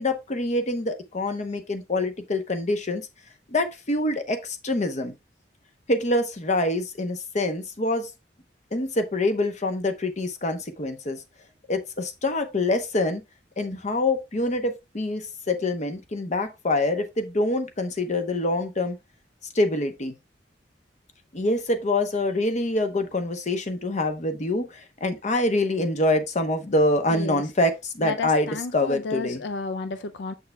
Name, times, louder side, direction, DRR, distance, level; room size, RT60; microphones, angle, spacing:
voice 1, 0.0-3.1 3.5-5.1 5.9-8.1 8.7-11.2 11.7-13.2 13.6-19.0 19.5-20.1 21.3-29.4, left 2 dB, 45° left, 0.9 m, -25 dB
voice 2, 27.1-27.4 28.0-30.3, left 4 dB, 80° left, 0.4 m, -32 dB
6.9 x 6.5 x 2.2 m
head